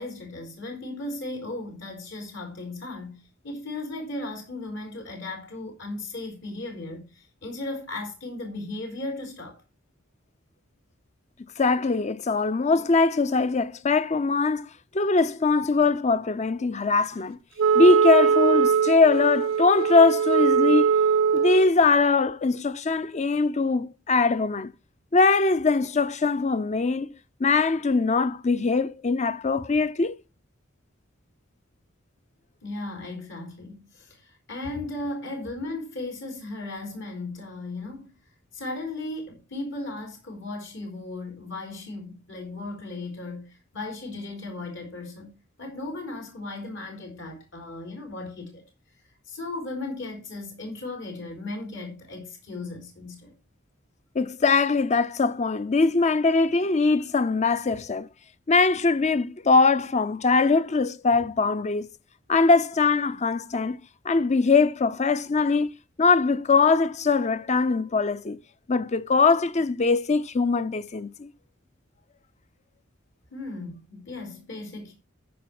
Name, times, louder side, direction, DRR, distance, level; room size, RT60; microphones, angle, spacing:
voice 1, 0.0-9.6 32.6-38.1 38.5-45.3 45.6-48.6 49.3-53.3 73.3-74.9, left 2 dB, 65° left, 4.0 m, -36 dB
voice 2, 11.6-14.7 14.9-17.4 17.7-20.9 21.3-24.7 25.1-27.1 27.4-30.2 54.1-58.1 58.5-61.9 62.3-63.8 64.0-68.4 68.7-71.3, left 4 dB, 35° left, 0.6 m, -22 dB
Wind instrument woodwind instrument, 17.6-21.7, right 6 dB, 65° right, 0.5 m, -21 dB
13.5 x 5.0 x 6.0 m
head